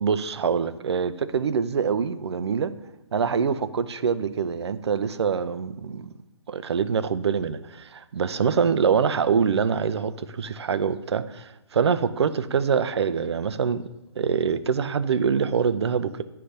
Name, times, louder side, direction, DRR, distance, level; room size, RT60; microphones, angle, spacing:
voice 1, 0.0-2.8 3.1-6.1 6.5-13.8 14.2-16.2, right 6 dB, 65° right, 13 dB, 0.5 m, -25 dB
9.9 x 3.3 x 6.5 m, 0.96 s
hypercardioid pair, 170°, 15 cm